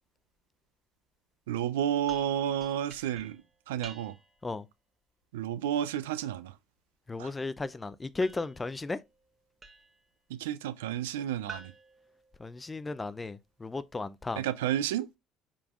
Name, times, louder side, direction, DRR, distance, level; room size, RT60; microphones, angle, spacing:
voice 1, 1.5-4.1 5.3-6.5 7.2-7.3 10.3-11.7 14.4-15.1, right 10 dB, 85° right, 0.3 m, -31 dB
sound 1, 2.1-4.5 8.2-10.1 11.5-12.9, right 4 dB, 30° right, 0.8 m, -51 dB
voice 2, 7.1-9.0 12.4-14.4, left 3 dB, 20° left, 0.4 m, -35 dB
4.9 x 3.5 x 2.3 m
hypercardioid pair, 65°, 0 cm